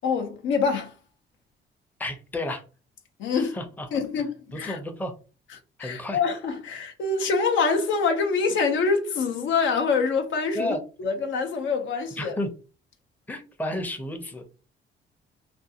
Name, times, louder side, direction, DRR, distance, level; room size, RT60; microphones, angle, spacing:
voice 1, 0.0-0.9 3.2-3.6 3.9-4.8 5.8-10.8 11.0-12.4, left 4 dB, 75° left, 0.6 m, -25 dB
voice 2, 2.0-2.6 3.3-3.9 4.5-5.1 5.8-6.2 10.5-10.8 12.2-12.5 13.3-14.4, left 1 dB, 10° left, 0.6 m, -31 dB
2.5 x 2.3 x 2.7 m
cardioid pair, 90°, 20 cm